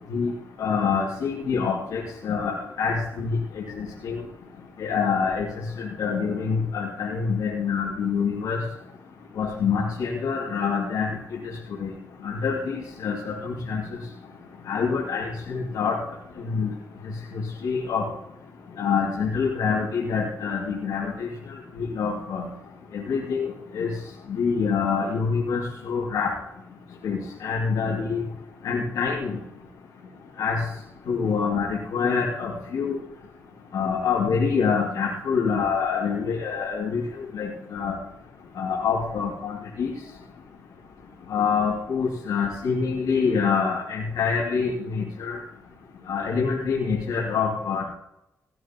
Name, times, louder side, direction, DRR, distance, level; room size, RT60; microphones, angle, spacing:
voice 1, 0.6-4.2 4.8-5.5 5.8-8.6 9.4-11.4 11.8-11.9 12.2-13.8 14.7-16.0 16.5-16.7 17.3-18.0 18.8-21.3 21.8-22.5 22.9-23.9 24.3-26.3 27.0-28.2 28.6-29.4 30.4-30.6 31.1-33.0 33.7-37.0 37.3-38.0 38.6-39.9 41.3-45.4 46.1-47.8, left 5 dB, 85° left, -4 dB, 2.5 m, -26 dB
17.5 x 10.5 x 3.0 m, 0.85 s
cardioid pair, 65°, 6 cm